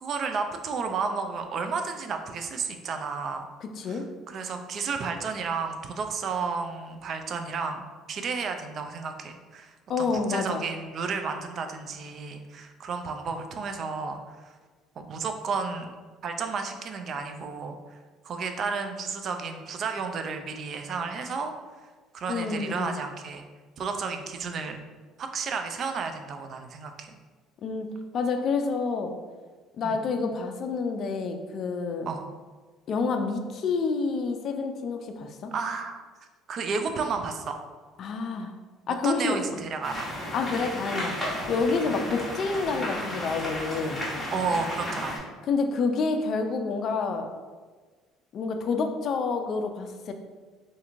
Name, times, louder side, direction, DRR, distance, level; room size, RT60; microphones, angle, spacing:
voice 1, 0.0-3.5 3.8-7.8 8.1-14.2 15.0-15.9 16.2-17.8 18.2-21.5 22.1-23.4 23.8-24.8 25.2-27.2 29.8-30.0 32.1-32.2 35.5-36.0 36.5-37.6 39.0-40.1 41.4-41.5 41.9-42.0 44.3-45.2, right 5 dB, 50° right, 6 dB, 0.3 m, -32 dB
voice 2, 3.6-4.0 9.9-10.6 22.3-23.0 27.6-29.1 29.8-32.1 32.9-35.5 38.0-38.5 38.9-39.4 40.3-41.1 41.5-44.1 45.5-47.3 48.3-50.1, left 4 dB, 55° left, 6 dB, 0.3 m, -28 dB
sound 1, 39.8-45.2, left 1 dB, 15° left, 1.1 m, -33 dB
2.8 x 2.5 x 2.4 m, 1.4 s
supercardioid pair, 75°, 0 cm